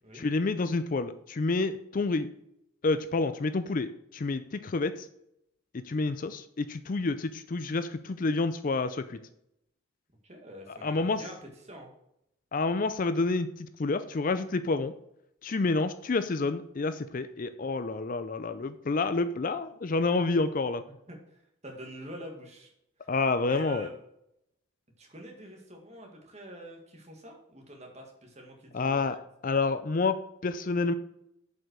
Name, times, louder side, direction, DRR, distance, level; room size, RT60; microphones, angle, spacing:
voice 1, 0.1-2.3 2.8-5.1 5.7-9.2 10.8-11.2 12.5-14.9 15.4-20.8 23.1-23.9 28.7-30.9, left 3 dB, 40° left, 11 dB, 0.4 m, -29 dB
voice 2, 10.2-11.4 11.6-11.9 21.1-21.4 21.6-22.7 23.5-24.0 25.0-29.2, equal, 30° right, 2 dB, 1.9 m, -45 dB
7.4 x 5.5 x 6.2 m, 0.77 s
head